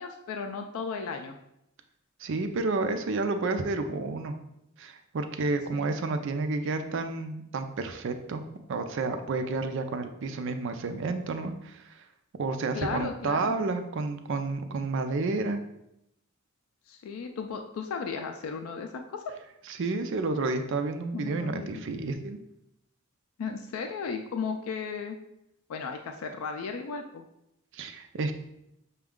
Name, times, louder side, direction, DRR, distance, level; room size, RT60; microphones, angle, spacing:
voice 1, 0.0-1.4 5.7-5.9 12.7-13.5 16.9-19.2 21.1-21.8 23.4-25.2 25.7-27.3, left 5 dB, 75° left, 5 dB, 0.4 m, -35 dB
voice 2, 2.2-4.3 4.8-8.4 8.7-12.1 12.3-15.6 19.7-22.4 27.7-28.3, right 3 dB, 60° right, 7 dB, 0.4 m, -30 dB
6.0 x 2.3 x 3.6 m, 0.81 s
head